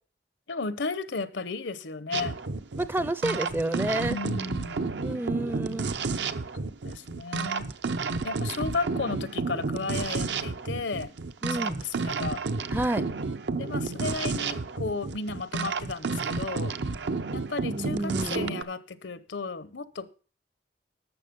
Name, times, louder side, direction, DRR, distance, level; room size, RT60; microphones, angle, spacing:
voice 1, 0.5-2.4 4.1-4.9 6.8-7.7 8.2-11.1 11.4-12.4 13.6-16.7 17.3-20.1, left 3 dB, 85° left, 0.8 m, -34 dB
sound 1, 2.1-18.6, right 4 dB, 75° right, 0.7 m, -31 dB
voice 2, 2.8-4.2 5.0-5.9 11.4-11.8 12.7-13.0 17.7-18.6, right 1 dB, 10° right, 0.4 m, -29 dB
11.5 x 7.1 x 5.2 m
head